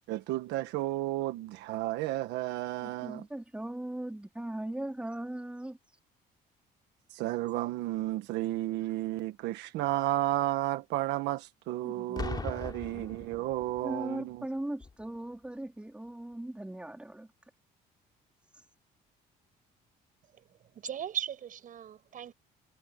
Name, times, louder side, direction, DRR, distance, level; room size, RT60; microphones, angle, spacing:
voice 1, 0.1-3.2 7.1-14.5, right 15 dB, 90° right, 1.4 m, -32 dB
voice 2, 2.8-5.8 11.8-12.3 12.9-13.1 13.8-17.3, right 1 dB, 5° right, 3.8 m, -39 dB
Boom, 12.2-13.9 14.8-15.0, left 4 dB, 25° left, 3.3 m, -39 dB
voice 3, 20.7-22.3, right 9 dB, 55° right, 6.4 m, -38 dB
cardioid pair, 110°, 17 cm